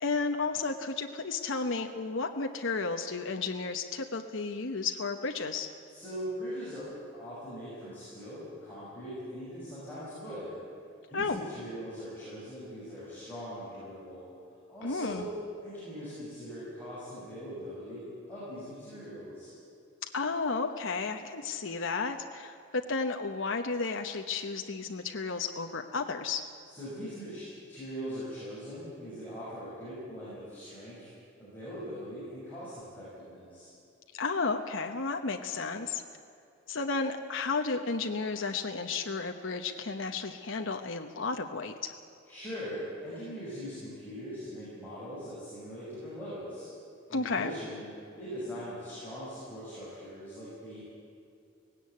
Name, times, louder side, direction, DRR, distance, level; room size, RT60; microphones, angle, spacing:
voice 1, 0.0-5.7 11.1-11.4 14.8-15.2 20.0-26.5 34.2-36.0 36.7-42.0 47.1-47.5, left 4 dB, 70° left, 4 dB, 1.0 m, -33 dB
voice 2, 5.9-6.8 7.1-10.5 11.1-14.3 14.7-15.3 15.6-19.5 26.6-27.4 27.7-31.1 31.4-33.7 42.3-46.7 47.1-47.8 48.2-50.8, equal, 10° left, -12 dB, 6.8 m, -41 dB
18.0 x 17.0 x 8.5 m, 2.6 s
head